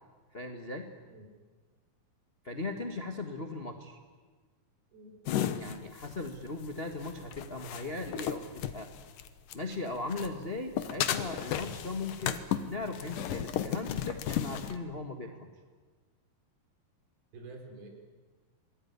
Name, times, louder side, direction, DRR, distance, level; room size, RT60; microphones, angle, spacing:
voice 1, 0.3-0.9 2.4-4.0 5.6-8.9 9.5-15.5, left 3 dB, 45° left, 4 dB, 0.7 m, -38 dB
sound 1, 5.3-9.8 10.1-14.8, left 10 dB, 70° left, 2.5 m, -34 dB
voice 2, 17.3-17.9, right 2 dB, 80° right, 3 dB, 6.1 m, -48 dB
26.5 x 21.0 x 9.7 m, 1.4 s
omnidirectional pair, 4.3 m